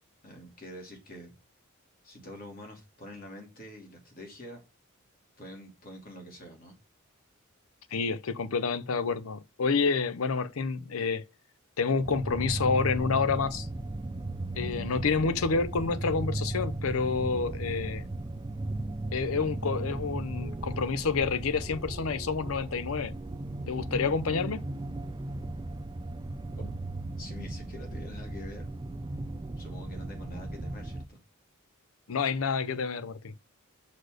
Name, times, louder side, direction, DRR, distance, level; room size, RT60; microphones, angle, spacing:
voice 1, 0.2-1.3 2.0-4.6 5.4-6.8 26.5-26.8 27.2-28.7 29.6-31.2, left 1 dB, 45° left, 2.7 m, -46 dB
voice 2, 7.9-11.2 11.8-13.7 14.6-18.0 19.1-23.1 23.7-24.6 32.1-33.3, left 5 dB, 75° left, 0.6 m, -28 dB
sound 1, 12.0-31.1, right 2 dB, 20° right, 0.4 m, -36 dB
6.5 x 4.2 x 6.4 m
head